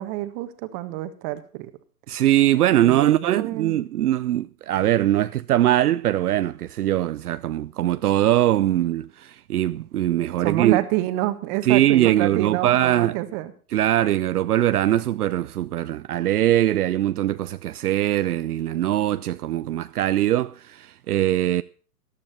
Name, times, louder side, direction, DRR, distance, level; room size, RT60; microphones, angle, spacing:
voice 1, 0.0-1.7 2.8-3.8 9.8-9.9 10.4-13.5, right 16 dB, 40° right, 1.6 m, -27 dB
voice 2, 2.1-10.8 11.6-13.2 13.7-21.6, right 13 dB, 75° right, 0.6 m, -21 dB
14.0 x 12.0 x 4.3 m
hypercardioid pair, 115°, 45 cm